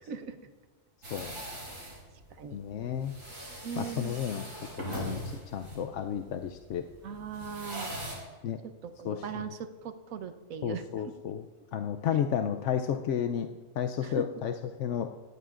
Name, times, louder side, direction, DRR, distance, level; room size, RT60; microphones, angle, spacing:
voice 1, 0.0-0.4 1.3-1.6 2.3-2.6 3.6-4.2 7.0-8.0 8.6-11.3 14.0-14.3, right 6 dB, 90° right, 9 dB, 1.3 m, -40 dB
sound 1, 1.0-8.2, right 1 dB, 75° right, 5.6 m, -41 dB
voice 2, 2.5-3.1 3.8-4.4 4.8-6.8 8.4-8.6 9.1-9.2 10.6-11.4 11.7-13.5 13.8-14.5 14.8-15.1, left 8 dB, 70° left, 5 dB, 0.9 m, -32 dB
18.5 x 15.0 x 2.5 m, 1.3 s
omnidirectional pair, 1.4 m